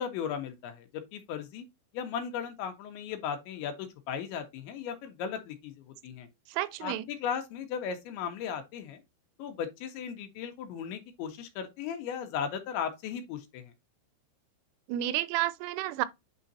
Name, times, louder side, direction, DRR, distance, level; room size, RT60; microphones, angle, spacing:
voice 1, 0.0-1.6 1.9-6.3 6.8-9.0 9.4-13.7, left 7 dB, 75° left, 3.2 m, -36 dB
voice 2, 6.5-7.1 14.9-16.1, right 14 dB, 85° right, 3.1 m, -31 dB
9.7 x 3.8 x 2.7 m
omnidirectional pair, 5.6 m